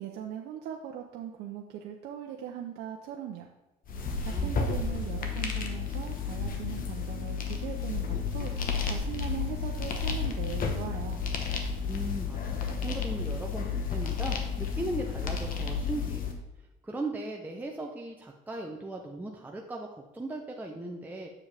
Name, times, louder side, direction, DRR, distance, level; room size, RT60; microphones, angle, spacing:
voice 1, 0.0-3.5 4.2-11.3, right 9 dB, 80° right, 1 dB, 0.7 m, -40 dB
sound 1, 3.9-16.3, left 5 dB, 55° left, 1.1 m, -32 dB
voice 2, 4.1-4.6 11.9-16.3 16.8-19.9 20.1-21.3, right 2 dB, 10° right, -1 dB, 0.7 m, -38 dB
7.1 x 7.0 x 3.4 m, 1.0 s
cardioid pair, 110°, 17 cm